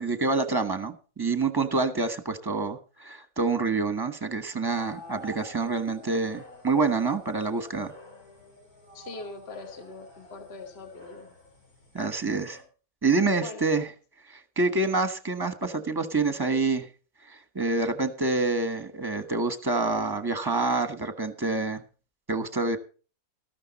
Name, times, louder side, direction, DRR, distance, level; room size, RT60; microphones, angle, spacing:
voice 1, 0.0-7.9 11.9-12.6 13.0-13.9 14.3-16.9 17.3-21.8 22.3-22.8, right 3 dB, 15° right, 9 dB, 1.2 m, -27 dB
sound 1, 4.7-12.6, left 1 dB, 75° left, 4.4 m, -49 dB
voice 2, 8.9-11.3 13.4-13.7, left 3 dB, 45° left, 6 dB, 1.6 m, -41 dB
14.0 x 12.5 x 4.1 m, 0.37 s
omnidirectional pair, 1.6 m